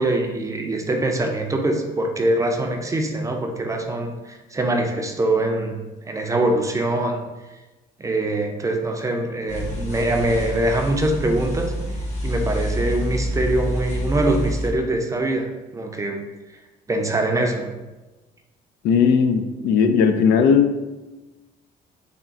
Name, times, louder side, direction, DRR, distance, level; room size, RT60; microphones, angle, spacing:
voice 1, 0.0-7.2 8.0-11.7 12.2-16.2 16.9-17.7, right 1 dB, 20° right, 3 dB, 0.5 m, -23 dB
sound 1, 9.5-14.7, equal, 40° left, 1.0 m, -27 dB
voice 2, 18.8-20.7, left 6 dB, 80° left, 6 dB, 0.4 m, -17 dB
3.5 x 2.4 x 4.0 m, 1.1 s
cardioid pair, 110°, 17 cm